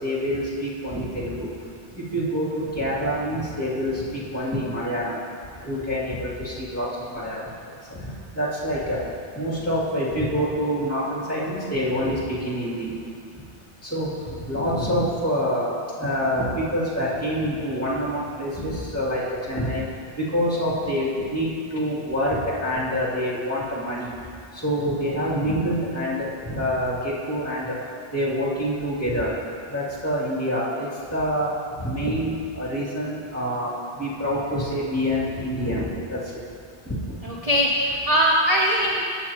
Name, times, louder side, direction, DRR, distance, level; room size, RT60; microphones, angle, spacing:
voice 1, 0.0-1.5 2.0-5.2 5.6-7.4 7.9-8.1 8.3-9.0 9.4-12.9 13.9-14.1 14.5-15.7 16.0-19.8 20.2-24.1 24.6-27.8 28.1-29.3 29.7-31.5 31.8-33.7 34.0-35.8 36.1-36.2 36.9-37.0, equal, 15° left, -8 dB, 2.4 m, -26 dB
voice 2, 37.2-39.0, equal, 40° right, -3 dB, 0.8 m, -21 dB
13.5 x 8.8 x 2.9 m, 2.3 s
omnidirectional pair, 1.0 m